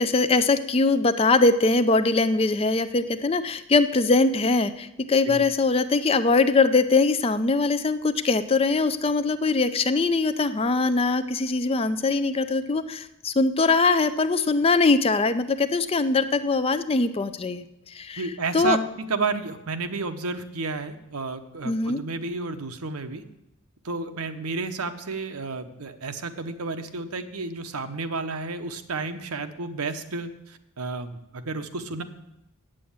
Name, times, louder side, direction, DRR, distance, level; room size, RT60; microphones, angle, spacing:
voice 1, 0.0-18.3 18.5-18.8 21.6-22.0, left 3 dB, 25° left, 12 dB, 0.4 m, -22 dB
voice 2, 18.2-23.2 23.8-32.0, right 3 dB, 85° right, 8 dB, 0.9 m, -31 dB
8.3 x 7.6 x 8.6 m, 0.88 s
head